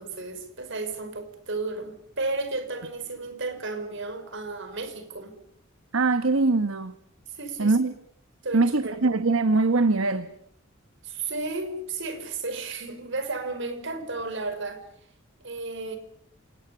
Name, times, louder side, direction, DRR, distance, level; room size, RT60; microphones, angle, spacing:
voice 1, 0.0-5.4 7.3-7.8 8.4-9.0 11.0-14.8 15.4-16.0, right 3 dB, 65° right, 8 dB, 5.5 m, -33 dB
voice 2, 5.9-7.0 7.6-7.9 8.5-10.3, right 3 dB, 80° right, 12 dB, 1.2 m, -22 dB
28.0 x 19.5 x 8.5 m, 0.70 s
head